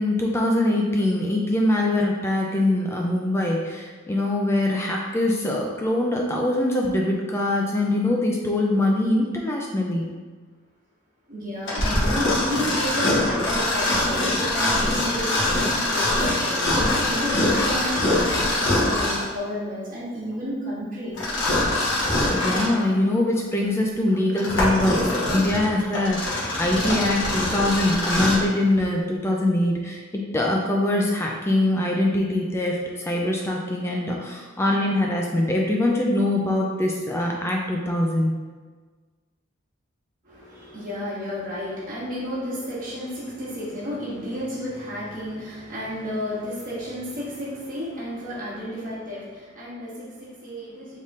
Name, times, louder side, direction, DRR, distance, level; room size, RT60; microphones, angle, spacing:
voice 1, 0.0-10.2 22.3-38.3, left 1 dB, 15° left, -1 dB, 0.3 m, -23 dB
voice 2, 11.3-21.1 28.7-28.8 40.2-51.0, equal, 40° right, -8 dB, 1.4 m, -32 dB
Mechanisms, 11.7-19.3 21.2-22.8 23.4-23.5 24.1-28.5, left 1 dB, 60° left, 1.1 m, -23 dB
4.0 x 3.5 x 2.4 m, 1.4 s
head